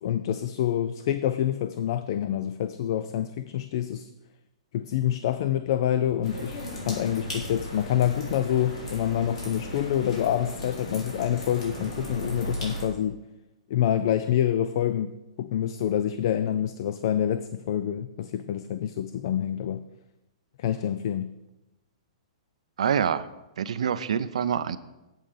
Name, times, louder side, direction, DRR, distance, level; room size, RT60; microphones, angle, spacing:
voice 1, 0.0-4.1 4.7-13.2 13.7-15.1 15.4-19.8 20.6-21.3, left 10 dB, 45° left, 12 dB, 0.4 m, -27 dB
sound 1, 6.2-12.9, left 1 dB, 80° left, 3.8 m, -36 dB
voice 2, 22.8-23.3 23.6-24.8, right 8 dB, 75° right, 12 dB, 0.5 m, -26 dB
7.7 x 7.4 x 5.0 m, 0.99 s
hypercardioid pair, 170°, 3 cm